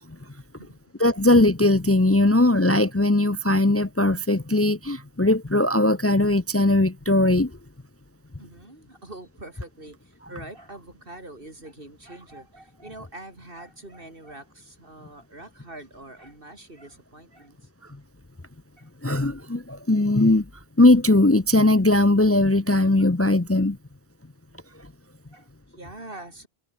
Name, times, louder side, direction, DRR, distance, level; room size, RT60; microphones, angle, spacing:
voice 1, 1.0-7.5 19.0-20.4 20.8-23.8, left 2 dB, 15° left, 0.8 m, -19 dB
voice 2, 8.4-17.7 18.8-18.9 25.3-26.5, right 2 dB, 60° right, 5.1 m, -44 dB
omnidirectional pair, 1.0 m